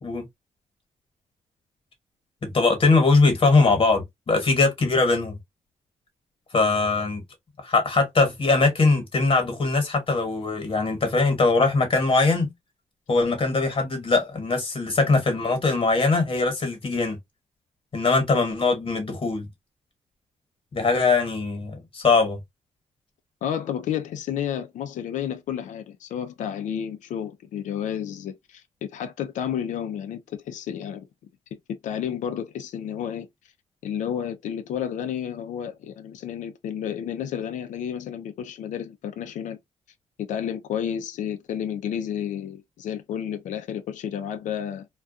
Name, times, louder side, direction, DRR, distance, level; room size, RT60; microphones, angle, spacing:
voice 1, 2.4-5.4 6.5-7.2 7.6-12.5 13.1-17.2 17.9-19.5 20.7-22.4, left 3 dB, 45° left, 1.1 m, -21 dB
voice 2, 23.4-31.1 31.8-33.3 33.8-39.6 40.2-44.9, left 9 dB, 85° left, 0.4 m, -31 dB
2.3 x 2.2 x 2.5 m
cardioid pair, 85°, 12 cm